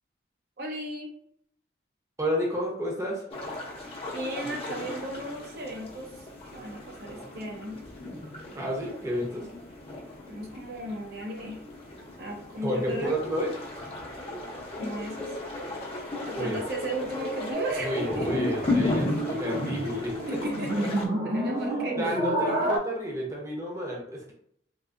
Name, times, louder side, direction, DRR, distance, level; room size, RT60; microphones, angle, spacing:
voice 1, 0.6-1.1 4.1-7.8 9.4-9.5 10.3-11.6 12.2-13.1 14.0-14.4 14.8-15.3 16.3-18.3 18.6-18.7 20.3-20.9 21.2-22.0 22.6-22.7, right 1 dB, 60° right, 0 dB, 0.7 m, -36 dB
voice 2, 2.2-3.3 8.5-9.5 12.6-13.5 16.3-16.6 17.8-20.4 21.6-24.3, equal, 15° right, -2 dB, 0.7 m, -31 dB
sound 1, 3.3-21.1, left 2 dB, 35° left, 0.7 m, -35 dB
sound 2, 17.5-22.8, right 1 dB, 90° right, 0.9 m, -30 dB
3.7 x 2.5 x 2.5 m, 0.70 s
head